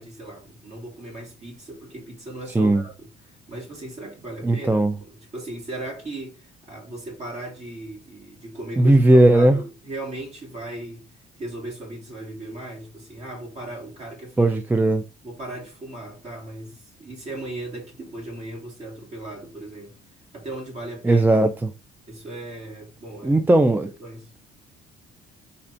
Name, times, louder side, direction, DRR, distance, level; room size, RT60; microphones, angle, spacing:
voice 1, 0.0-11.1 11.4-14.6 15.2-20.0 20.3-21.2 22.1-23.4 24.0-24.3, right 2 dB, 45° right, 2.7 m, -37 dB
voice 2, 4.4-4.9 8.8-9.6 14.4-15.0 21.0-21.7 23.2-23.9, right 1 dB, 10° right, 0.4 m, -17 dB
4.2 x 4.2 x 2.6 m
cardioid pair, 110°, 17 cm